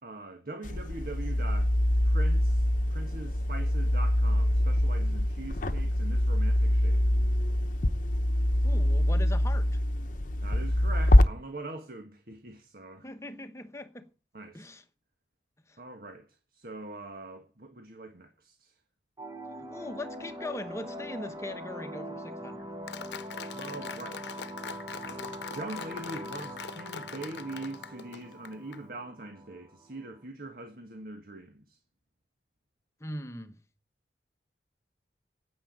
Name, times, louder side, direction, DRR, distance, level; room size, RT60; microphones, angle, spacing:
voice 1, 0.0-1.7 2.0-7.0 10.4-13.1 14.3-14.7 15.8-16.2 16.5-18.7 23.5-24.2 25.0-31.8, right 2 dB, 55° right, 1.6 m, -42 dB
sound 1, 0.6-11.2, left 1 dB, 50° left, 0.9 m, -24 dB
voice 2, 8.6-9.7 13.0-14.1 14.5-14.8 15.7-15.8 19.6-22.7 33.0-33.6, left 1 dB, 15° left, 1.1 m, -40 dB
sound 2, 19.2-30.2, equal, 25° right, 1.6 m, -42 dB
Applause, 22.9-28.8, left 6 dB, 80° left, 0.8 m, -42 dB
9.9 x 8.8 x 8.7 m
head